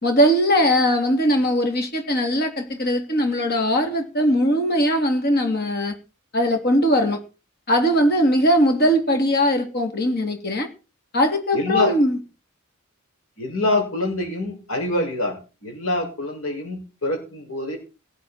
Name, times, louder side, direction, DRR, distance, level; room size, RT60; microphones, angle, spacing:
voice 1, 0.0-6.0 6.3-7.2 7.7-10.7 11.1-12.2, equal, 50° left, 3.0 m, -20 dB
voice 2, 11.5-12.0 13.4-17.8, left 2 dB, 70° left, 6.4 m, -25 dB
18.5 x 8.4 x 4.5 m
head